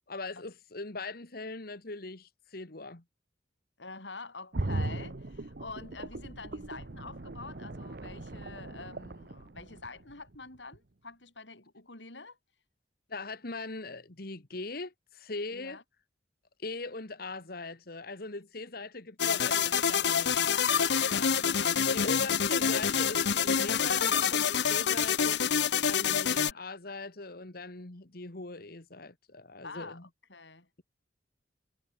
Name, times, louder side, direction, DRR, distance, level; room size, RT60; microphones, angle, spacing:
voice 1, 0.1-3.0 13.1-15.8 16.6-20.4 21.9-25.4 25.8-30.0, left 3 dB, 55° left, 1.8 m, -40 dB
voice 2, 3.8-12.4 15.5-15.8 21.0-22.4 23.6-23.9 26.0-26.6 29.6-30.7, left 3 dB, 90° left, 6.9 m, -46 dB
sound 1, 4.5-10.3 10.7-10.8, right 2 dB, 60° right, 1.1 m, -38 dB
sound 2, 19.2-26.5, left 7 dB, 70° left, 0.9 m, -27 dB
head